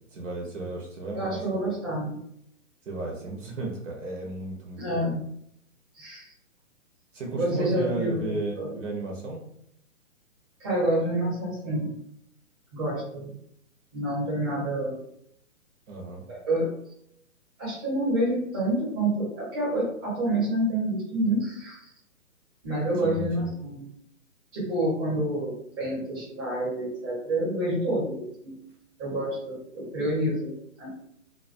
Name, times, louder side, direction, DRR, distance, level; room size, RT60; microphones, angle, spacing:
voice 1, 0.1-1.7 2.9-5.1 7.1-9.4 15.9-16.2 23.0-23.5, right 2 dB, 60° right, -1 dB, 0.8 m, -34 dB
voice 2, 1.1-2.2 4.8-5.2 5.9-6.3 7.4-8.7 10.6-12.0 12.7-13.3 13.9-15.0 16.3-16.7 17.6-21.9 22.6-23.9 24.5-28.6 29.0-30.9, right 1 dB, 15° right, -7 dB, 0.9 m, -28 dB
2.2 x 2.2 x 2.5 m, 0.73 s
hypercardioid pair, 160°, 42 cm